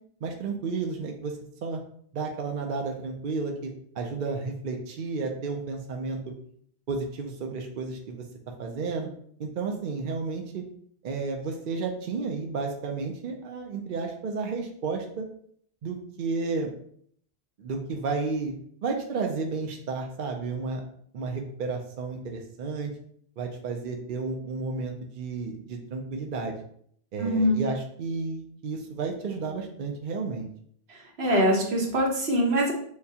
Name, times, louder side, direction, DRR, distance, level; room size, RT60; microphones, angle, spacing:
voice 1, 0.2-1.3 1.6-1.8 2.1-6.3 6.9-8.2 8.6-9.1 9.4-10.6 11.0-15.2 15.8-16.7 17.6-18.5 18.8-20.8 21.1-22.9 23.4-26.6 27.1-30.5, right 4 dB, 60° right, 2 dB, 0.7 m, -32 dB
voice 2, 27.2-27.6 30.9-32.7, equal, 75° right, -1 dB, 1.2 m, -24 dB
6.5 x 2.2 x 2.7 m, 0.64 s
omnidirectional pair, 1.1 m